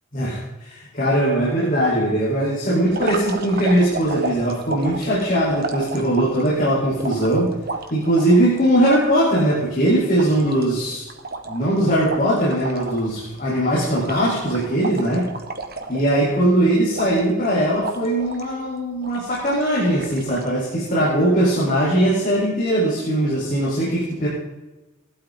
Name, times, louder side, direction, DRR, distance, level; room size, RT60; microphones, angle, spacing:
voice 1, 0.1-7.5 7.9-11.1 11.4-15.3 15.9-24.3, right 1 dB, 40° left, -6 dB, 4.4 m, -20 dB
sound 1, 2.9-6.5 7.0-9.5 9.9-10.0 10.2-13.1 13.4-13.6 13.9-16.4 16.9-17.5 17.8-18.5 19.0-19.6 20.0-20.5, right 3 dB, 50° right, 1.5 m, -32 dB
18.0 x 12.0 x 3.9 m, 1.1 s
head